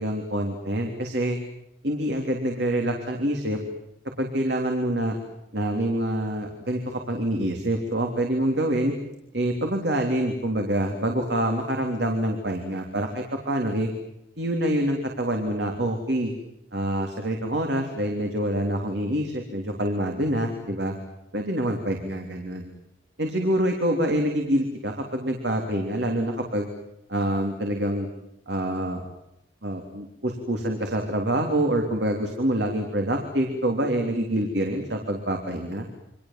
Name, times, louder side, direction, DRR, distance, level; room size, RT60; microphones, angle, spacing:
voice 1, 0.0-1.4 1.8-3.6 4.2-5.2 5.5-8.9 9.3-13.9 14.4-16.3 16.7-20.9 21.3-22.7 23.2-26.7 27.1-28.1 28.5-29.0 29.6-35.9, right 1 dB, 60° right, 3 dB, 3.5 m, -26 dB
29.0 x 25.0 x 7.7 m, 0.84 s
head